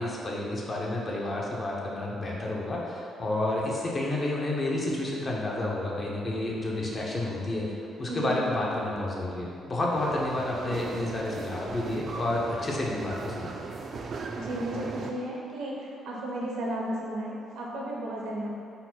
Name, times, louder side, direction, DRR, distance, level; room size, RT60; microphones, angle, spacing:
voice 1, 0.0-13.5, left 1 dB, 35° left, -3 dB, 0.7 m, -30 dB
sound 1, 9.9-15.1, right 4 dB, 50° right, 0.3 m, -38 dB
voice 2, 14.3-18.5, right 1 dB, 90° right, -3 dB, 0.7 m, -34 dB
3.9 x 2.2 x 4.3 m, 2.4 s
cardioid pair, 90°, 0 cm